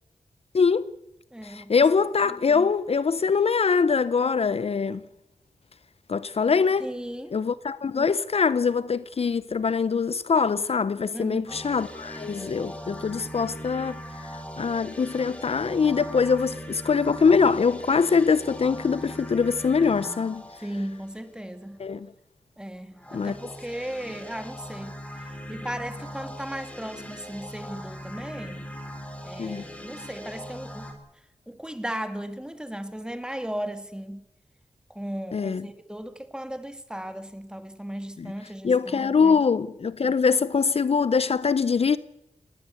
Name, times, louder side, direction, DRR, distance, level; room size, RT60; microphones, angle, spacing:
voice 1, 0.5-0.9 1.4-5.0 6.1-6.9 7.3-14.0 14.6-20.4 21.8-22.1 23.1-23.3 29.4-29.6 35.3-35.7 38.2-38.3 38.6-42.0, left 5 dB, 60° left, 0.7 m, -23 dB
voice 2, 1.3-1.8 2.3-2.7 6.8-7.4 11.1-11.6 20.6-21.8 22.6-24.9 25.5-28.7 29.2-30.9 31.5-34.2 34.9-39.4, equal, 5° right, 2.0 m, -36 dB
sound 1, 11.5-21.5 22.9-30.9, equal, 10° left, 4.1 m, -40 dB
19.5 x 18.5 x 8.4 m
wide cardioid pair, 90°, 12 cm